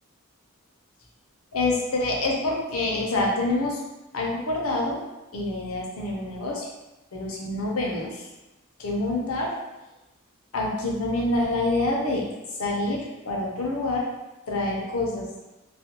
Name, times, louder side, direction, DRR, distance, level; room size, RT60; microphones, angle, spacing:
voice 1, 1.5-3.8 4.1-5.0 5.3-6.7 7.1-8.2 8.8-9.5 10.5-12.3 12.6-14.1 14.5-15.3, left 2 dB, 70° left, -2 dB, 0.6 m, -26 dB
2.4 x 2.2 x 2.8 m, 1.0 s
head